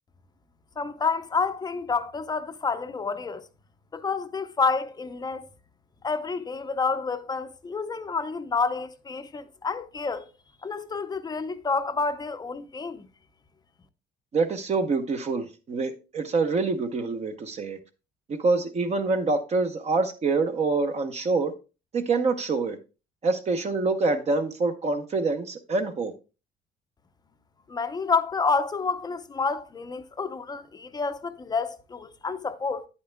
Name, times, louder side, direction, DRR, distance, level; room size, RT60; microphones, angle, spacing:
voice 1, 0.8-3.5 3.9-5.5 6.0-10.3 10.6-13.1 27.7-32.9, left 4 dB, 25° left, 0.6 m, -29 dB
voice 2, 14.3-17.8 18.3-21.5 21.9-22.8 23.2-26.1, right 3 dB, 40° right, 0.9 m, -26 dB
9.4 x 8.4 x 2.2 m
cardioid pair, 110°, 17 cm